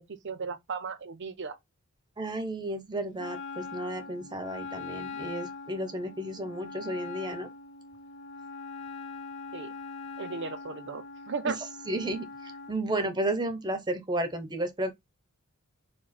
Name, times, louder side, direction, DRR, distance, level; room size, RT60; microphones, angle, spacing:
voice 1, 0.0-1.6 9.5-9.7 10.2-11.6, right 5 dB, 55° right, 0.7 m, -36 dB
voice 2, 2.2-7.5 11.5-11.6 11.9-14.9, right 1 dB, 20° right, 0.8 m, -33 dB
Wind instrument woodwind instrument, 3.2-12.8, left 4 dB, 55° left, 0.5 m, -42 dB
4.8 x 2.2 x 4.3 m
head